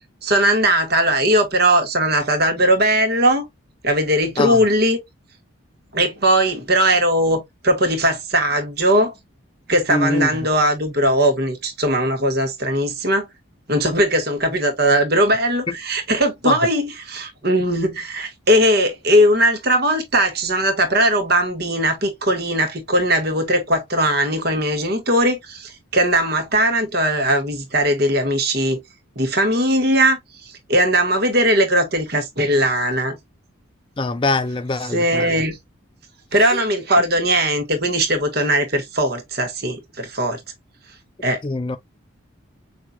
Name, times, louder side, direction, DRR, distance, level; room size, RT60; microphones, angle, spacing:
voice 1, 0.2-3.4 3.8-5.0 5.9-9.1 9.7-13.3 13.7-28.8 29.1-33.2 34.9-35.6 36.3-40.4 41.2-41.4, right 1 dB, 50° right, 1.6 m, -19 dB
voice 2, 9.9-10.3 16.4-16.6 34.0-35.4 41.4-41.8, left 2 dB, 25° left, 0.4 m, -22 dB
5.9 x 2.7 x 2.3 m
head